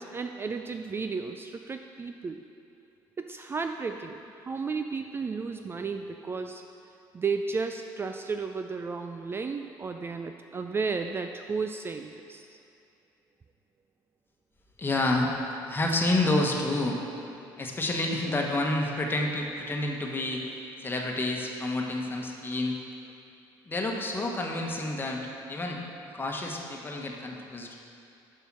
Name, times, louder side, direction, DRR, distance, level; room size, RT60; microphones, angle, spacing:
voice 1, 0.0-2.4 3.2-6.7 7.1-12.5, right 4 dB, 25° right, 6 dB, 0.3 m, -33 dB
voice 2, 14.8-15.3 15.7-17.0 17.6-20.4 20.8-22.8 23.6-25.2 25.5-25.8 26.1-27.8, left 2 dB, 25° left, 1 dB, 1.2 m, -29 dB
6.9 x 5.8 x 6.0 m, 2.6 s
supercardioid pair, 85°, 9 cm